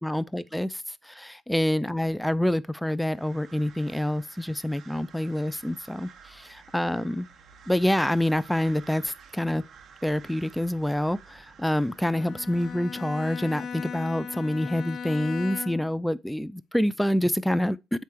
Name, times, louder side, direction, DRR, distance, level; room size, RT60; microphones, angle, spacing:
voice 1, 0.0-7.3 7.7-9.6 10.0-18.0, left 1 dB, 5° left, 0.5 m, -27 dB
sound 1, 3.0-12.7, right 6 dB, 60° right, 1.5 m, -51 dB
Bowed string instrument, 12.0-16.0, left 6 dB, 60° left, 0.6 m, -37 dB
8.1 x 3.5 x 4.6 m
supercardioid pair, 60°, 0 cm